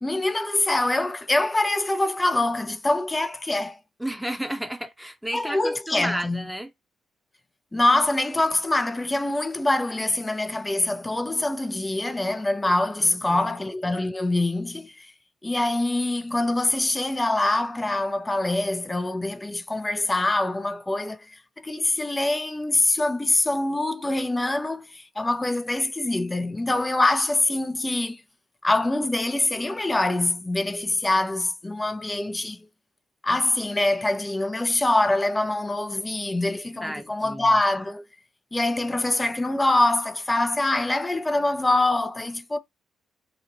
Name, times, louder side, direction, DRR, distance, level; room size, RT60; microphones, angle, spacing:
voice 1, 0.0-3.8 5.3-6.5 7.7-15.1 15.4-28.2 28.6-32.7 33.2-38.1 38.5-42.6, left 2 dB, 20° left, 0.5 m, -24 dB
voice 2, 4.0-6.7 13.0-13.5 36.8-37.5, equal, 5° right, 0.9 m, -32 dB
2.9 x 2.4 x 2.9 m
hypercardioid pair, 45°, 0 cm